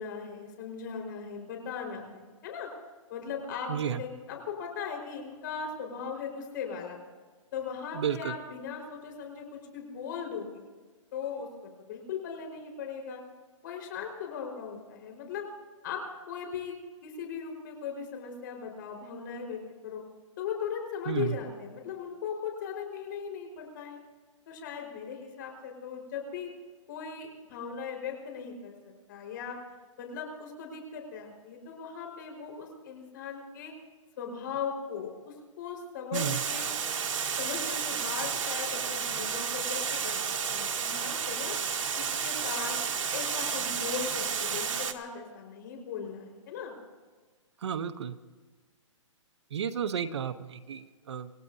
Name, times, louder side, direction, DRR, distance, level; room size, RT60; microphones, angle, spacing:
voice 1, 0.0-2.7 3.1-7.0 7.5-10.6 11.1-11.5 11.9-13.2 13.6-15.5 15.8-16.8 17.0-20.0 20.4-24.0 24.5-26.5 26.9-28.7 29.1-29.6 30.0-33.7 34.2-36.7 37.4-40.2 40.5-41.5 42.0-42.8 43.1-46.8, left 6 dB, 35° left, 2 dB, 4.7 m, -38 dB
voice 2, 3.7-4.0 7.9-8.3 21.1-21.4 36.1-36.4 47.6-48.2 49.5-51.3, right 8 dB, 60° right, 11 dB, 0.9 m, -32 dB
Water, 36.1-44.9, right 6 dB, 75° right, 1.7 m, -31 dB
27.5 x 17.5 x 2.7 m, 1.4 s
hypercardioid pair, 165°, 17 cm